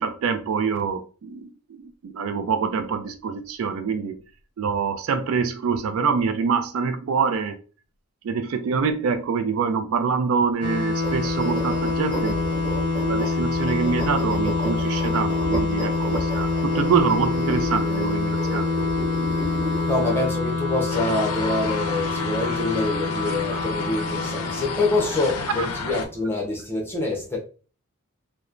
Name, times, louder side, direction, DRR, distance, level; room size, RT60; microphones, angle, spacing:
voice 1, 0.0-1.5 1.8-4.2 4.6-7.6 8.2-18.9 20.0-20.3 22.4-22.6 24.0-24.1 25.6-25.7, right 5 dB, 75° right, 0.3 m, -25 dB
sound 1, 10.6-26.0, left 3 dB, 45° right, 1.0 m, -26 dB
sound 2, 11.0-19.9, equal, 25° right, 1.4 m, -32 dB
voice 2, 19.9-27.4, left 2 dB, 10° left, 0.7 m, -26 dB
sound 3, 20.9-26.1, left 5 dB, 85° left, 0.4 m, -32 dB
3.0 x 2.1 x 2.4 m
head